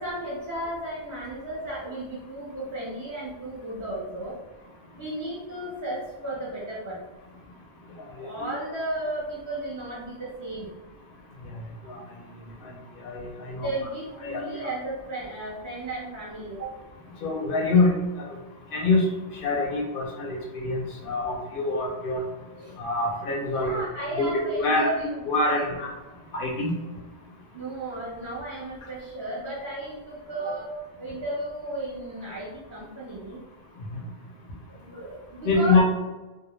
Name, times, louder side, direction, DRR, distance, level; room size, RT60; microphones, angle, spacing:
voice 1, 0.0-4.4 4.9-7.0 8.1-10.7 13.6-16.8 22.6-22.8 23.4-25.0 25.5-25.6 27.5-33.4 34.7-35.8, right 1 dB, 20° right, -8 dB, 0.6 m, -34 dB
voice 2, 8.2-8.5 11.9-12.0 13.0-13.7 14.2-14.4 17.2-17.9 18.7-19.1 19.4-22.3 22.8-23.8 24.1-24.9 25.3-25.9 26.3-26.7 35.4-35.8, left 3 dB, 60° left, 1 dB, 0.7 m, -25 dB
2.2 x 2.0 x 3.0 m, 1.2 s
omnidirectional pair, 1.1 m